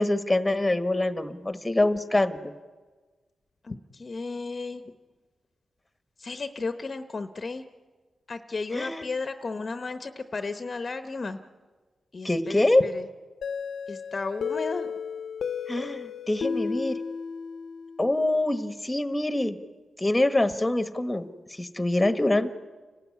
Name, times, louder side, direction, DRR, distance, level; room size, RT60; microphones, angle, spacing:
voice 1, 0.0-2.5 8.7-9.1 12.2-12.8 15.7-17.0 18.0-19.6 20.0-22.5, left 1 dB, 15° left, 10 dB, 1.2 m, -25 dB
voice 2, 3.6-4.8 6.2-7.6 8.3-11.4 12.1-13.0 13.9-14.9, left 3 dB, 40° left, 9 dB, 0.8 m, -34 dB
sound 1, 13.4-18.1, left 6 dB, 75° left, 0.7 m, -33 dB
29.5 x 12.5 x 9.6 m, 1.4 s
cardioid pair, 90°, 0 cm